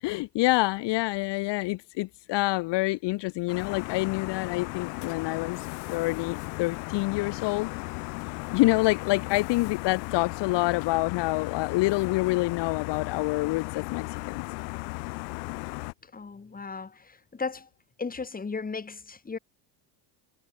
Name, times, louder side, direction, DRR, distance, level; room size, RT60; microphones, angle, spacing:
voice 1, 0.0-7.7 8.5-14.4, left 21 dB, 55° left, 0.9 m, -27 dB
sound 1, 3.5-15.9, left 36 dB, 80° left, 3.6 m, -36 dB
voice 2, 16.0-17.7 18.0-19.4, left 4 dB, 15° left, 2.3 m, -36 dB
supercardioid pair, 105°, 50 cm